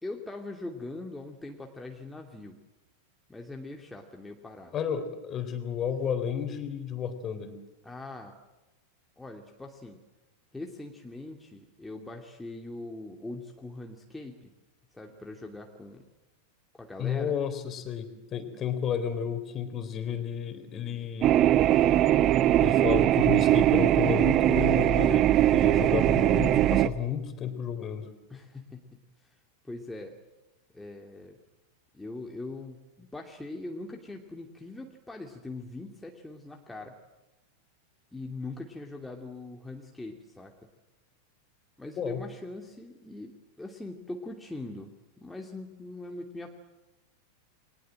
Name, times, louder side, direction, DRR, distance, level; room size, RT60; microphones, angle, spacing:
voice 1, 0.0-2.6 3.3-4.8 7.8-8.4 9.2-10.0 10.5-14.5 14.9-16.0 16.7-17.3 28.3-28.9 29.6-30.2 30.7-31.4 31.9-37.0 38.1-40.5 41.8-44.9 45.2-46.5, left 2 dB, 5° left, 1 dB, 2.7 m, -41 dB
voice 2, 4.7-7.6 17.0-21.4 22.6-28.1 42.0-42.2, left 8 dB, 30° left, 9 dB, 3.7 m, -32 dB
sound 1, 21.2-26.9, right 13 dB, 35° right, 1.0 m, -21 dB
29.5 x 23.0 x 7.8 m, 1.0 s
figure-of-eight pair, 90°, 0 cm